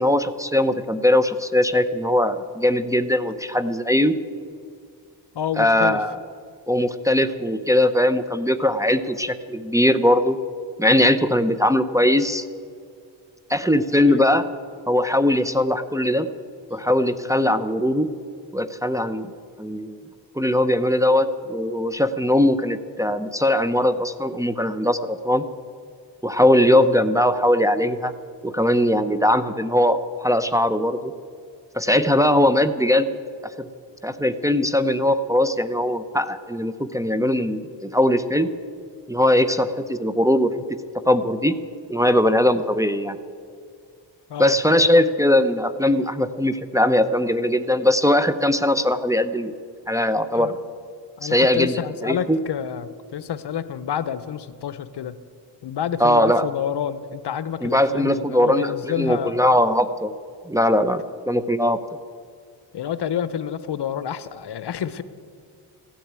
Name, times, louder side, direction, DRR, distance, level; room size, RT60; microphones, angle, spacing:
voice 1, 0.0-4.2 5.6-6.2 6.7-10.4 10.8-12.5 13.5-14.4 14.9-16.3 16.7-18.1 18.5-19.3 19.6-20.0 20.4-25.4 26.2-28.1 28.4-31.1 31.7-33.1 33.6-33.7 34.0-38.5 39.1-40.5 41.1-41.6 41.9-43.2 44.4-49.5 49.9-50.6 51.2-52.4 56.0-56.4 57.6-60.1 60.5-61.8, left 1 dB, 5° right, 8 dB, 0.7 m, -20 dB
voice 2, 5.3-6.0 14.0-14.2 44.3-44.6 45.0-45.1 50.3-50.5 51.2-55.2 55.6-59.5 62.7-65.0, left 9 dB, 60° left, 14 dB, 0.8 m, -29 dB
15.0 x 10.5 x 8.9 m, 2.2 s
cardioid pair, 75°, 44 cm